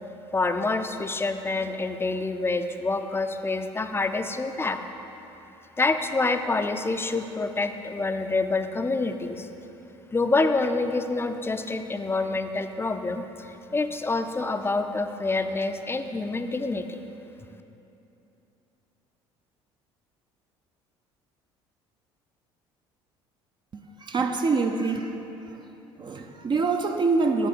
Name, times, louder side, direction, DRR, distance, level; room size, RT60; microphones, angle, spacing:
voice 1, 0.3-4.8 5.8-9.5 10.1-16.9, left 3 dB, 15° left, 7 dB, 0.5 m, -27 dB
voice 2, 24.0-25.2 25.5-25.6 26.0-27.5, right 4 dB, 35° right, 4 dB, 0.5 m, -25 dB
9.3 x 4.2 x 5.7 m, 3.0 s
hypercardioid pair, 60°, 14 cm